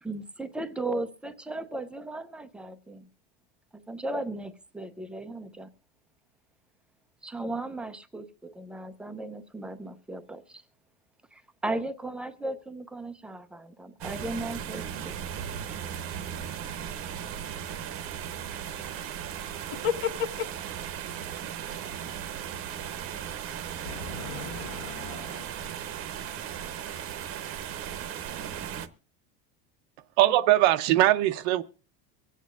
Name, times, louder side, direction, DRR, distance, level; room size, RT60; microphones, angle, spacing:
voice 1, 0.0-3.1 3.7-5.7 7.2-10.6 11.3-15.1, right 2 dB, 5° right, 0.5 m, -36 dB
sound 1, 14.0-28.9, right 9 dB, 45° right, 0.9 m, -37 dB
voice 2, 19.7-20.5 23.8-25.4, left 8 dB, 75° left, 1.6 m, -33 dB
voice 3, 30.2-31.6, right 15 dB, 70° right, 0.7 m, -21 dB
24.5 x 8.3 x 2.5 m
cardioid pair, 160°, 32 cm